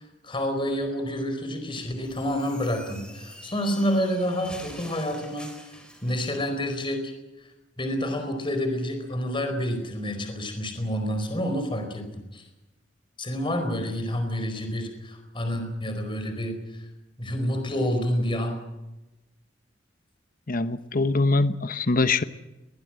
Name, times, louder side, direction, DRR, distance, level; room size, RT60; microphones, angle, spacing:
voice 1, 0.0-5.5 6.0-7.1 7.8-12.4 13.2-16.8 17.2-18.6, equal, 25° left, 6 dB, 4.7 m, -28 dB
sound 1, 2.0-6.4, left 1 dB, 5° left, 4.8 m, -46 dB
voice 2, 20.5-22.2, left 3 dB, 50° left, 12 dB, 1.0 m, -23 dB
22.0 x 20.0 x 7.7 m, 1.0 s
head